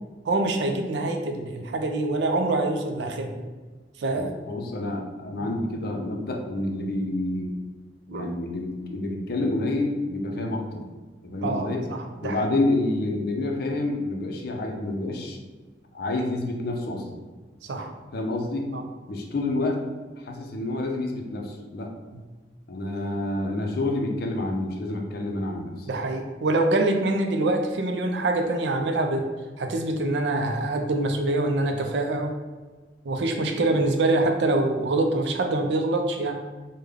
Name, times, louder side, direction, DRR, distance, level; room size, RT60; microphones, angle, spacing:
voice 1, 0.2-3.4 4.0-4.3 5.4-5.5 8.1-8.3 11.4-12.4 17.7-17.9 18.7-18.8 22.1-22.2 25.9-29.3 29.6-32.3 33.1-36.3, right 2 dB, 65° right, 4 dB, 0.4 m, -25 dB
voice 2, 4.2-7.5 8.1-10.8 11.2-11.9 12.2-15.4 15.9-17.2 18.1-18.7 19.1-19.8 20.2-21.9 22.7-25.9, left 2 dB, 55° left, 2 dB, 0.5 m, -28 dB
3.4 x 2.2 x 3.5 m, 1.3 s
head